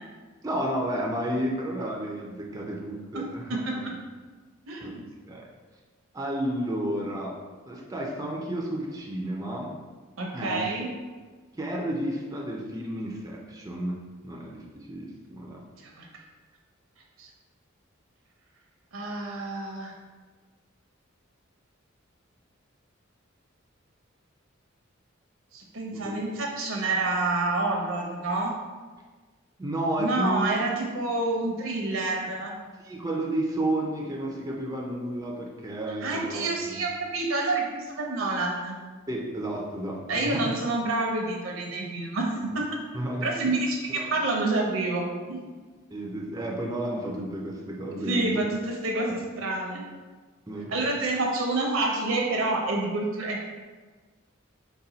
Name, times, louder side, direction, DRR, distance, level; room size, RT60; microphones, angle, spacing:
voice 1, 0.4-3.9 4.8-5.5 6.1-7.4 7.7-9.8 10.3-10.7 11.5-14.0 14.2-15.6 25.9-26.2 29.6-30.5 32.8-36.9 39.1-40.6 42.9-43.3 43.9-44.1 45.9-48.5 48.9-49.1 50.5-50.8, right 1 dB, 15° right, -2 dB, 0.4 m, -32 dB
voice 2, 3.1-3.6 4.7-5.1 10.2-10.9 15.8-16.1 17.2-17.3 18.9-20.0 25.5-28.5 30.0-32.6 36.0-38.8 40.1-42.7 43.2-45.5 48.0-49.8 50.7-53.5, right 2 dB, 70° right, 0 dB, 0.7 m, -28 dB
4.0 x 2.2 x 3.9 m, 1.4 s
head